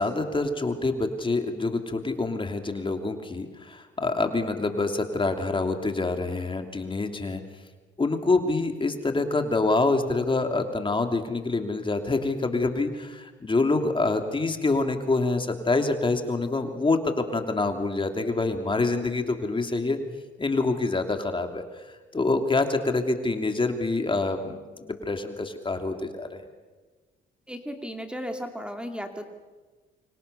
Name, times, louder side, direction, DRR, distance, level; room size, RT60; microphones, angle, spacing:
voice 1, 0.0-7.4 8.0-20.0 20.4-21.9 22.1-26.4, left 3 dB, 25° left, 5 dB, 2.9 m, -26 dB
voice 2, 27.5-29.2, equal, 5° right, 5 dB, 2.6 m, -35 dB
28.5 x 25.0 x 6.9 m, 1.3 s
cardioid pair, 90°, 20 cm